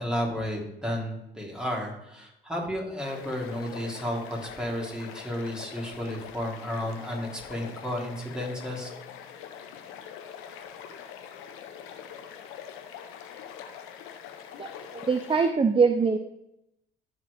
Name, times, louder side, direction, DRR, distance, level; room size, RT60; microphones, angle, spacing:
voice 1, 0.0-8.9, equal, 5° right, -2 dB, 3.3 m, -32 dB
sound 1, 3.0-15.5, left 8 dB, 90° left, 0.9 m, -43 dB
voice 2, 14.6-16.2, right 5 dB, 25° right, 8 dB, 0.6 m, -23 dB
14.0 x 4.8 x 3.4 m, 0.84 s
supercardioid pair, 65°, 21 cm